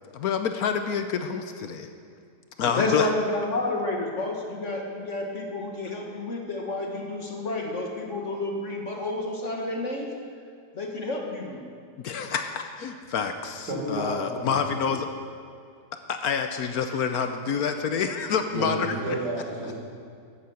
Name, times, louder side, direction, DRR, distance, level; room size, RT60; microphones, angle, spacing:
voice 1, 0.1-1.9 2.6-3.1 12.0-15.1 16.1-19.1, left 6 dB, 65° left, 7 dB, 1.1 m, -28 dB
voice 2, 2.6-10.1 10.7-11.6, left 2 dB, 45° left, 1 dB, 1.6 m, -30 dB
voice 3, 13.7-14.7 18.5-19.7, right 1 dB, 75° right, -4 dB, 4.1 m, -31 dB
12.5 x 8.5 x 7.8 m, 2.2 s
omnidirectional pair, 1.8 m